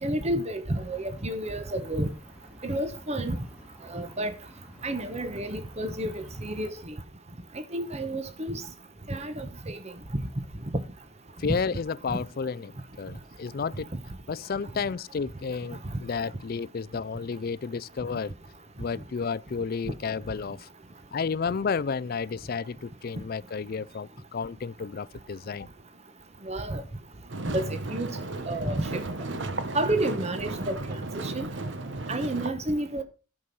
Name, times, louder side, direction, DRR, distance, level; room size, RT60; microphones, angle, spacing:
voice 1, 0.0-2.1 2.6-3.4 3.9-4.4 4.8-6.9 7.7-8.6 9.1-9.8 26.5-26.8 27.5-28.2 28.5-29.0 29.7-30.8 31.2-31.5 32.1-33.0, right 1 dB, 30° right, 1.0 m, -30 dB
sound 1, 0.7-6.7, equal, 5° right, 1.7 m, -50 dB
voice 2, 11.4-12.7 13.0-13.9 14.3-18.3 18.8-20.7 21.1-25.7, left 5 dB, 45° left, 0.4 m, -32 dB
sound 2, 27.3-32.5, right 2 dB, 60° right, 1.0 m, -34 dB
11.5 x 6.1 x 5.4 m
head